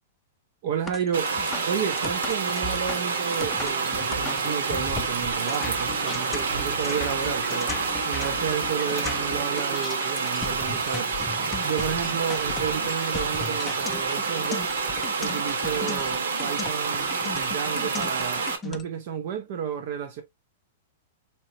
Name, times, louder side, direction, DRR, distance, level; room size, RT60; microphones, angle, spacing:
voice 1, 0.6-1.3 1.6-7.8 8.0-11.1 11.6-14.7 15.2-20.2, right 8 dB, 45° right, 0.6 m, -32 dB
sound 1, 0.9-18.8, left 5 dB, 15° left, 0.4 m, -37 dB
sound 2, 1.1-18.6, right 5 dB, 90° right, 1.0 m, -28 dB
sound 3, 6.5-8.7, right 4 dB, 75° right, 1.3 m, -41 dB
4.0 x 3.0 x 2.7 m
supercardioid pair, 160°, 0 cm